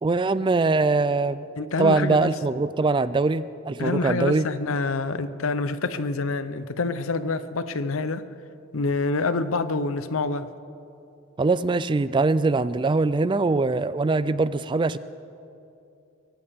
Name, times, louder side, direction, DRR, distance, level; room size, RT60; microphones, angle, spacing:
voice 1, 0.0-1.5 1.8-4.5 11.4-15.0, right 3 dB, 25° right, 15 dB, 0.3 m, -22 dB
voice 2, 1.6-2.3 3.8-8.2 8.7-10.5, left 3 dB, 85° left, 13 dB, 0.7 m, -27 dB
22.5 x 17.5 x 3.6 m, 2.7 s
head